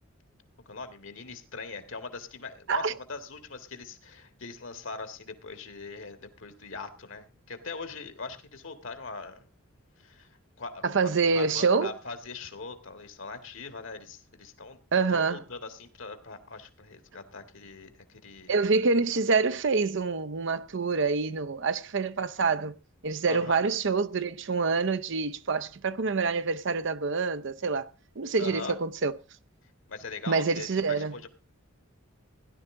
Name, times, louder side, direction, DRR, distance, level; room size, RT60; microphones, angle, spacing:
voice 1, 0.6-9.5 10.0-14.8 15.1-18.6 23.2-23.6 28.4-28.7 29.9-31.3, left 4 dB, 60° left, 1.8 m, -41 dB
voice 2, 10.8-11.9 14.9-15.4 18.5-22.7 23.0-27.9 28.2-29.1 30.3-31.1, right 4 dB, 55° right, 0.6 m, -26 dB
16.5 x 11.0 x 3.7 m
head